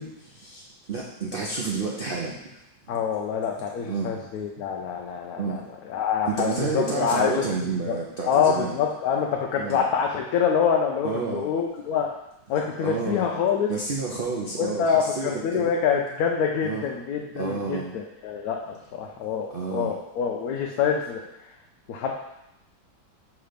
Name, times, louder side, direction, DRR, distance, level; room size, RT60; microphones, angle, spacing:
voice 1, 0.0-2.6 3.8-4.2 5.4-5.6 6.3-8.8 9.5-9.8 11.0-11.5 12.5-13.3 13.7-15.7 16.6-16.9 17.4-17.9 19.5-19.9, right 4 dB, 85° right, -2 dB, 0.4 m, -30 dB
voice 2, 2.9-8.0 8.3-12.1 12.5-13.7 14.6-21.5 21.9-22.1, left 7 dB, 70° left, 1 dB, 1.0 m, -26 dB
5.8 x 3.2 x 5.0 m, 0.87 s
omnidirectional pair, 1.9 m